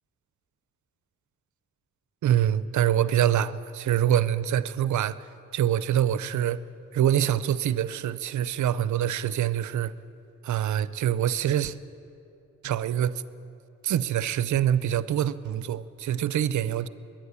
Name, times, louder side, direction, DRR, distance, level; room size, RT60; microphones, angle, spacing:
voice 1, 2.2-5.2 5.5-6.6 6.9-9.9 10.4-11.7 12.6-13.2 13.8-16.9, right 10 dB, 75° right, 16 dB, 0.5 m, -25 dB
21.5 x 9.0 x 7.0 m, 2.7 s
cardioid pair, 50°, 30 cm